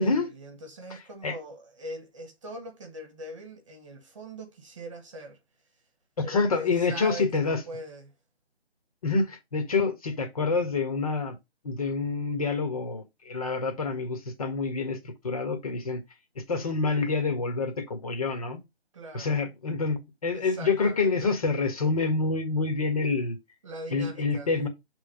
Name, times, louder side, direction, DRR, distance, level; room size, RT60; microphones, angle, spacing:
voice 1, 0.0-5.4 6.2-8.1 13.6-13.9 18.9-19.4 20.3-21.3 23.6-24.5, right 1 dB, 30° right, 1.4 m, -41 dB
voice 2, 6.2-7.6 9.0-11.4 11.6-16.0 16.3-18.6 19.1-23.4 23.9-24.7, left 4 dB, 35° left, 1.7 m, -27 dB
7.2 x 3.6 x 5.1 m
figure-of-eight pair, 150°, 32 cm